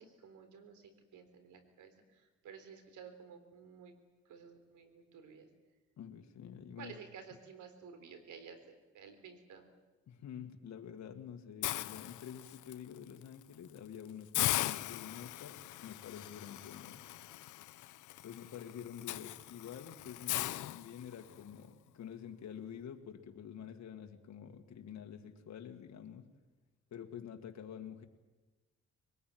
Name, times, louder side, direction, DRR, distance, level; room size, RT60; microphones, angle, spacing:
voice 1, 0.0-3.9 4.3-5.5 6.8-9.7, right 6 dB, 80° right, 9 dB, 3.8 m, -53 dB
voice 2, 6.0-7.0 10.1-17.1 18.2-26.3 26.9-28.1, left 8 dB, 65° left, 5 dB, 1.9 m, -48 dB
Hiss, 11.6-12.7 13.2-13.4 13.8-13.9 14.3-21.4, left 16 dB, 85° left, 0.7 m, -39 dB
22.0 x 20.0 x 9.3 m, 1.2 s
cardioid pair, 90°, 30 cm